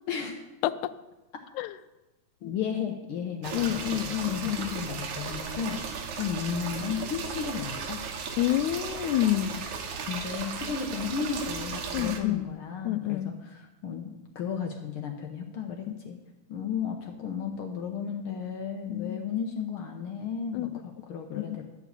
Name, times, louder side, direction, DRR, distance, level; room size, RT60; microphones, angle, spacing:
voice 1, 2.4-8.0 10.1-16.2 16.5-21.7, left 7 dB, 70° left, 3 dB, 1.3 m, -34 dB
sound 1, 3.4-12.2, right 6 dB, 85° right, 2.5 m, -36 dB
voice 2, 3.5-4.8 8.4-9.7 11.9-12.5 12.9-13.4 15.9-16.0 18.9-19.2 20.5-20.7 21.3-21.6, left 14 dB, 90° left, 14 dB, 2.0 m, -28 dB
12.0 x 4.9 x 8.0 m, 1.0 s
omnidirectional pair, 3.3 m